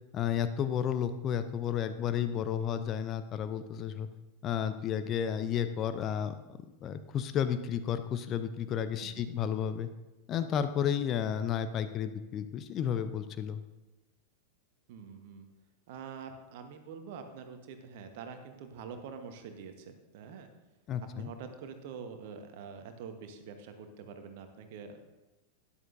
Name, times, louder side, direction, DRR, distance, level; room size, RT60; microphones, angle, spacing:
voice 1, 0.1-4.1 4.4-6.3 6.8-9.9 10.3-13.6 20.9-21.3, left 9 dB, 30° left, 10 dB, 0.5 m, -32 dB
voice 2, 14.9-15.5 15.9-20.5 21.1-25.0, right 6 dB, 50° right, 7 dB, 1.1 m, -45 dB
12.5 x 10.0 x 2.6 m, 1.1 s
figure-of-eight pair, 90°, 0 cm